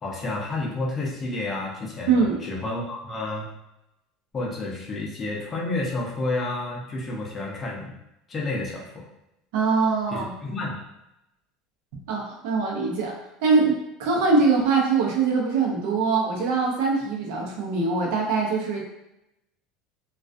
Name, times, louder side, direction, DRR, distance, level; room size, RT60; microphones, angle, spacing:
voice 1, 0.0-3.5 4.3-7.9 8.3-9.0 10.1-10.8, left 2 dB, 25° left, -3 dB, 0.5 m, -30 dB
voice 2, 2.1-2.4 9.5-10.3 12.1-13.1 13.4-18.8, right 4 dB, 75° right, -1 dB, 0.7 m, -23 dB
2.3 x 2.3 x 2.5 m, 0.88 s
cardioid pair, 145°, 0 cm